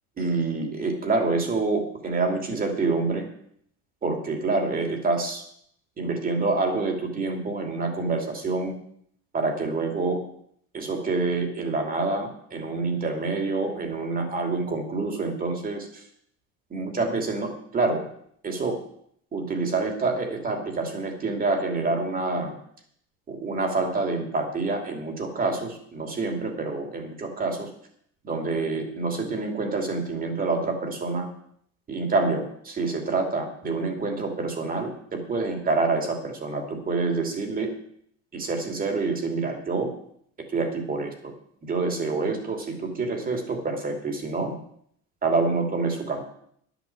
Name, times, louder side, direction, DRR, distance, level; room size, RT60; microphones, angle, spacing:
voice 1, 0.2-3.3 4.0-5.4 6.0-8.7 9.3-10.2 10.7-16.0 16.7-18.0 18.4-18.8 19.3-22.5 23.3-27.7 28.2-31.3 31.9-37.7 38.3-39.9 40.5-41.3 41.6-44.5 45.2-46.2, right 3 dB, 25° right, 4 dB, 2.9 m, -27 dB
11.0 x 8.2 x 7.6 m, 0.67 s
cardioid pair, 135°, 32 cm